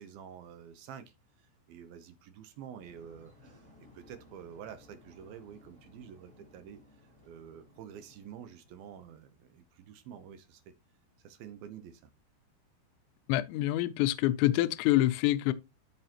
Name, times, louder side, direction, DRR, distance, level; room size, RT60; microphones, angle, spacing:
voice 1, 0.0-6.8 7.2-10.6 11.2-12.1, right 8 dB, 75° right, 2.3 m, -49 dB
sound 1, 2.8-9.3, left 2 dB, 20° right, 2.4 m, -60 dB
voice 2, 13.3-15.5, left 15 dB, 85° left, 2.9 m, -26 dB
13.5 x 5.5 x 2.9 m
omnidirectional pair, 5.1 m